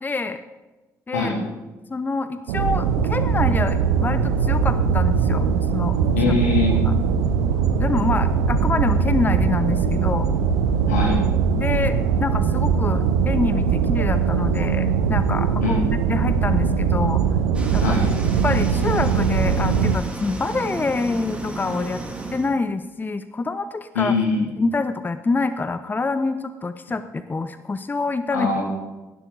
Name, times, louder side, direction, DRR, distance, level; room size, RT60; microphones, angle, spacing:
voice 1, 0.0-0.4 1.1-1.3 1.9-5.4 5.7-6.4 6.8-6.9 7.8-10.3 11.6-11.9 12.2-15.8 16.1-17.2 17.7-18.0 18.4-22.0 22.3-24.1 24.6-28.5, left 3 dB, 20° left, 12 dB, 0.7 m, -26 dB
sound 1, 2.5-20.0, right 6 dB, 70° right, 0.9 m, -21 dB
voice 2, 6.2-6.7 10.9-11.2 15.6-15.8 17.8-18.1 23.9-24.4 28.3-28.6, left 4 dB, 80° left, 0 dB, 2.5 m, -22 dB
sound 2, 17.5-22.5, right 2 dB, 15° right, 3.2 m, -32 dB
17.0 x 12.0 x 4.0 m, 1.1 s
figure-of-eight pair, 45°, 9 cm